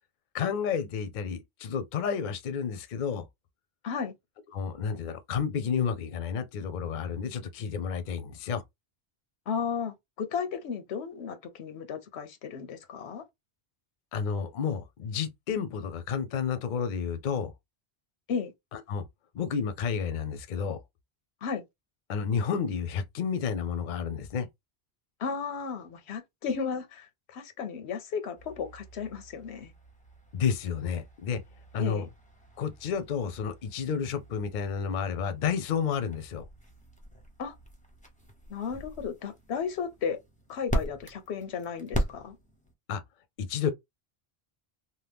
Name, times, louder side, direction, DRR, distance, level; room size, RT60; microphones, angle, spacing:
voice 1, 0.3-3.2 4.5-8.6 14.1-17.5 18.7-19.0 19.3-20.8 22.1-24.5 30.3-31.4 31.7-32.1 32.6-36.5 42.9-43.0 43.4-43.7, left 7 dB, 55° left, 0.6 m, -31 dB
voice 2, 9.5-13.2 18.3-18.5 21.4-21.6 25.2-29.7 31.8-32.1 37.4-37.5 38.5-40.2 40.5-42.4, left 6 dB, 90° left, 0.9 m, -34 dB
sound 1, 28.3-42.7, equal, 10° left, 0.6 m, -40 dB
2.8 x 2.1 x 3.4 m
omnidirectional pair, 1.1 m